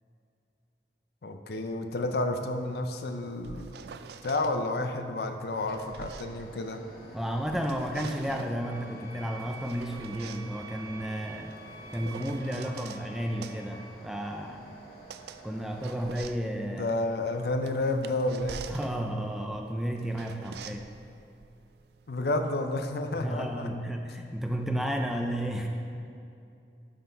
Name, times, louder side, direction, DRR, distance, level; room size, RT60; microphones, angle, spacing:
voice 1, 1.2-3.7 4.2-6.8 16.7-18.6 22.1-23.7, left 2 dB, 65° left, 6 dB, 0.5 m, -30 dB
sound 1, 3.2-4.5 5.4-7.2 7.5-8.6 9.4-13.0 13.4-22.5, right 6 dB, 65° right, 0.3 m, -46 dB
sound 2, 5.6-16.1, right 1 dB, 40° left, 2.0 m, -50 dB
voice 2, 7.1-11.5 11.9-14.7 15.4-16.9 18.7-20.9 23.1-25.7, equal, ahead, 3 dB, 0.4 m, -32 dB
sound 3, 8.6-13.7, right 3 dB, 85° right, 1.0 m, -48 dB
12.0 x 4.3 x 4.5 m, 2.6 s
head